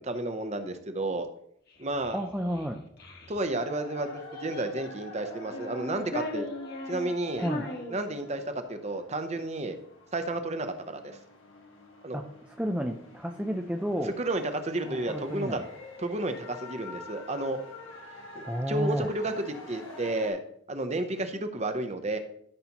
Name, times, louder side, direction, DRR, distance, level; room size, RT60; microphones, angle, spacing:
voice 1, 0.0-1.3 1.8-2.2 3.3-6.4 6.9-7.5 7.9-9.8 10.1-11.2 12.0-12.2 14.0-15.6 16.0-17.6 18.3-20.4 20.7-22.2, right 2 dB, 35° right, 8 dB, 0.8 m, -32 dB
Child speech kid speaking, 1.7-3.4 4.1-5.0 5.4-8.6, left 1 dB, 50° left, 1.5 m, -39 dB
voice 2, 2.1-2.8 7.4-7.7 12.1-12.3 12.6-14.2 14.9-15.6 18.5-19.1, equal, 5° right, 3 dB, 0.4 m, -31 dB
sound 1, 3.5-20.3, left 2 dB, 80° left, 1.7 m, -47 dB
13.0 x 5.7 x 3.0 m, 0.70 s
head